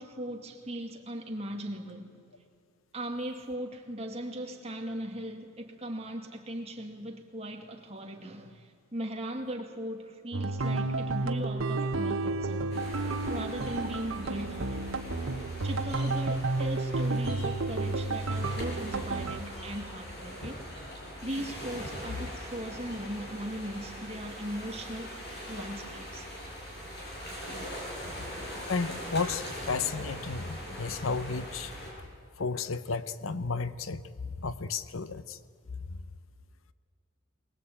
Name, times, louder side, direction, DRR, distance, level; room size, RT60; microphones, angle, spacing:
voice 1, 0.0-2.2 2.9-12.8 13.3-14.8 15.6-20.6 21.2-25.1 25.5-26.3, right 1 dB, 30° right, 2.2 m, -38 dB
sound 1, 10.3-19.4, right 2 dB, 80° right, 1.2 m, -31 dB
sound 2, 12.7-31.9, equal, 50° left, 7.3 m, -42 dB
voice 2, 28.7-32.0 32.4-34.0 34.4-35.4 35.9-36.0, left 4 dB, 80° left, 0.8 m, -33 dB
22.5 x 20.0 x 8.7 m
head